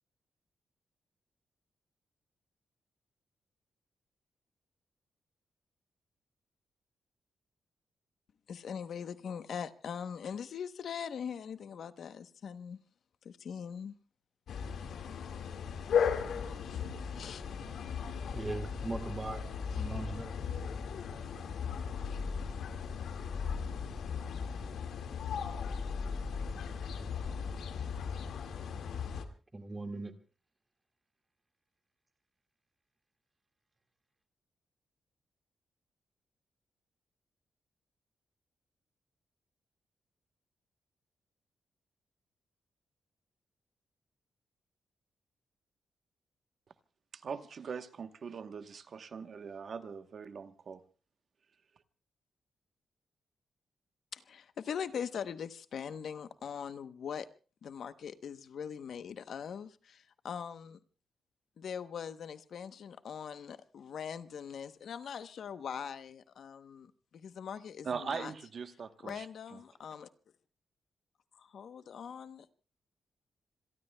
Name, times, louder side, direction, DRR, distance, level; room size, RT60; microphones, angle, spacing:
voice 1, 8.5-12.8 13.2-13.9 16.4-18.2 54.1-57.3 57.6-60.8 61.6-68.3 69.0-70.1 71.4-72.5, left 7 dB, 60° left, 0.9 m, -42 dB
sound 1, 14.5-29.2, left 6 dB, 85° left, 1.9 m, -36 dB
voice 2, 18.3-19.4 19.7-20.3 29.5-30.1, right 2 dB, 20° right, 1.9 m, -39 dB
voice 3, 47.1-50.8 67.8-69.3 69.5-69.6, right 6 dB, 50° right, 1.0 m, -41 dB
27.0 x 22.5 x 2.2 m
wide cardioid pair, 160°, 0 cm